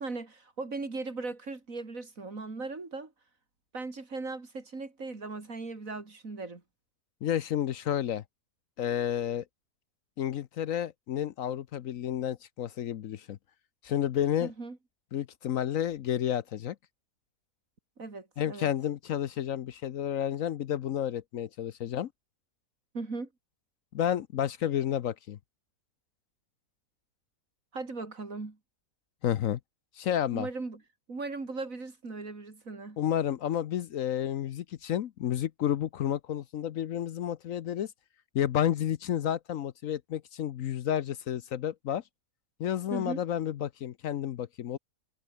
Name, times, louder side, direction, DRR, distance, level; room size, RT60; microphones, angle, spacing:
voice 1, 0.0-3.1 3.7-6.6 14.4-14.8 18.0-18.7 22.9-23.3 27.7-28.6 30.3-30.8 31.1-33.0 42.9-43.2, right 3 dB, 60° right, 3.7 m, -38 dB
voice 2, 7.2-8.2 8.8-9.4 10.2-13.4 13.8-14.5 15.1-16.8 18.4-22.1 23.9-25.4 29.2-29.6 30.0-30.5 33.0-37.9 38.3-42.0 42.6-44.8, left 10 dB, 65° left, 1.1 m, -31 dB
omnidirectional pair, 1.6 m